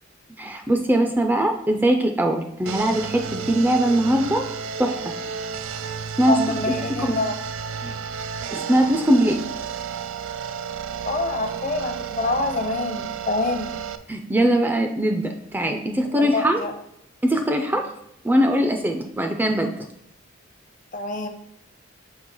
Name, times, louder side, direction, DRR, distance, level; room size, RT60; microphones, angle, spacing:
voice 1, 0.4-4.5 4.8-5.0 6.2-6.4 6.9-7.1 7.8-7.9 8.5-9.4 14.1-16.6 17.2-17.9 18.2-19.7, right 1 dB, 10° right, 4 dB, 0.4 m, -21 dB
sound 1, 2.7-14.0, right 6 dB, 85° right, 0.4 m, -32 dB
voice 2, 6.3-7.3 11.0-13.7 16.1-16.7 20.9-21.3, left 2 dB, 40° left, 5 dB, 0.7 m, -26 dB
6.2 x 2.9 x 5.3 m, 0.76 s
head